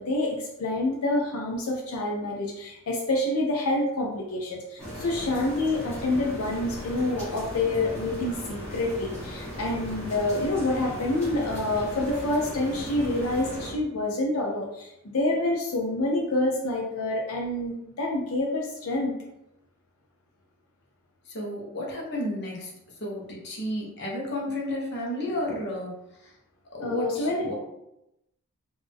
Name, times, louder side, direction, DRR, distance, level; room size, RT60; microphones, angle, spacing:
voice 1, 0.0-19.1 26.8-27.5, left 2 dB, 80° left, 0 dB, 0.6 m, -27 dB
sound 1, 4.8-13.7, equal, 5° left, 1.3 m, -37 dB
voice 2, 21.3-22.7 23.0-26.3 26.7-27.5, left 1 dB, 50° left, -3 dB, 0.9 m, -32 dB
3.6 x 2.6 x 3.4 m, 0.85 s
head